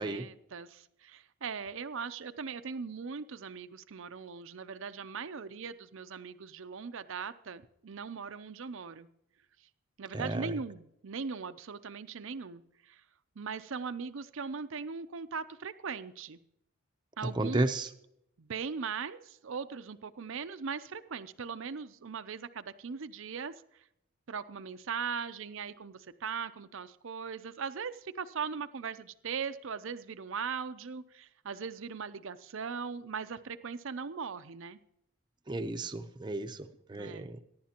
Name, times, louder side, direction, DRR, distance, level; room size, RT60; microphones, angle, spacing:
voice 1, 0.0-9.1 10.0-13.0 13.4-16.4 17.2-17.7 18.4-23.8 24.3-34.8 36.9-37.3, right 5 dB, 60° right, 12 dB, 0.5 m, -39 dB
voice 2, 10.1-10.5 17.3-17.9 35.5-37.4, right 2 dB, 20° right, 7 dB, 0.7 m, -33 dB
22.5 x 11.0 x 2.9 m, 0.76 s
head